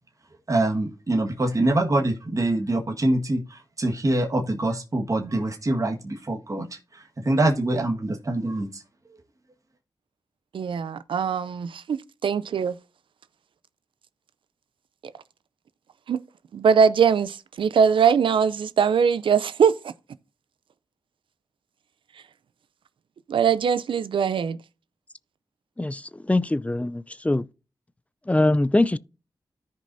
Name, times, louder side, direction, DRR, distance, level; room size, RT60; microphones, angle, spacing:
voice 1, 0.5-6.7 6.9-8.8, right 1 dB, 40° right, 1.7 m, -24 dB
voice 2, 10.5-12.8 16.1-16.2 16.5-19.9 23.3-24.6, right 7 dB, 80° right, 0.5 m, -21 dB
voice 3, 26.3-27.4 28.3-29.0, left 2 dB, 15° left, 0.5 m, -22 dB
14.0 x 5.3 x 2.7 m
cardioid pair, 45°, 9 cm